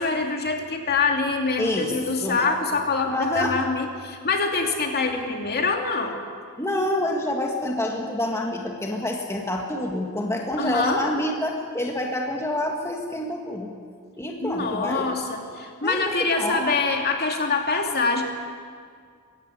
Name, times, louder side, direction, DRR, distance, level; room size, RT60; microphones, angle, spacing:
voice 1, 0.0-6.2 10.6-11.0 14.4-18.2, left 4 dB, 45° left, 3 dB, 2.6 m, -25 dB
voice 2, 1.6-2.4 3.1-3.6 6.6-13.7 14.2-15.1 15.8-16.6, left 1 dB, 15° left, 1 dB, 1.8 m, -27 dB
22.5 x 16.0 x 9.7 m, 2.1 s
head